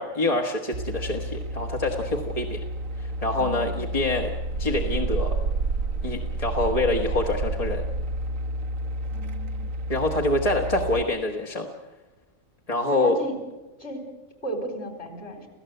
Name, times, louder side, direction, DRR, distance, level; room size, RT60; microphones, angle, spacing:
voice 1, 0.0-2.6 3.0-4.3 4.6-5.3 6.0-7.8 9.9-11.7 12.7-13.2, left 2 dB, 30° left, 1 dB, 1.6 m, -26 dB
sound 1, 0.7-11.0, right 2 dB, 80° right, 1.5 m, -30 dB
voice 2, 3.4-3.7 9.1-9.7 12.9-13.4 13.8-14.0 14.4-15.5, equal, 50° left, 5 dB, 4.9 m, -33 dB
29.5 x 16.0 x 7.9 m, 1.1 s
omnidirectional pair, 1.4 m